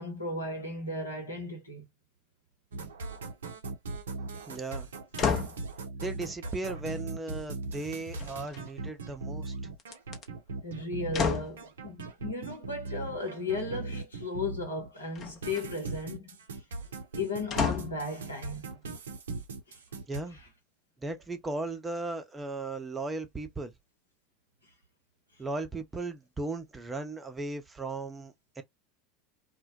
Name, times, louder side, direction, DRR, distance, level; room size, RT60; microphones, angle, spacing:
voice 1, 0.0-1.9 10.6-16.6 17.1-18.8 19.7-19.8 20.3-20.5, left 2 dB, 85° left, 0.9 m, -36 dB
sound 1, 2.7-14.9 15.2-20.2, right 3 dB, 70° right, 0.5 m, -39 dB
voice 2, 4.5-4.9 6.0-9.5 20.1-20.4 21.0-23.7 25.4-28.6, right 2 dB, 15° right, 0.6 m, -36 dB
sound 2, 5.2-5.6 8.1-8.9 9.8-10.2 11.1-11.6 15.1-15.7 17.5-18.1 18.7-18.8, left 6 dB, 35° left, 0.7 m, -31 dB
2.2 x 2.0 x 2.7 m
figure-of-eight pair, 80°, 0 cm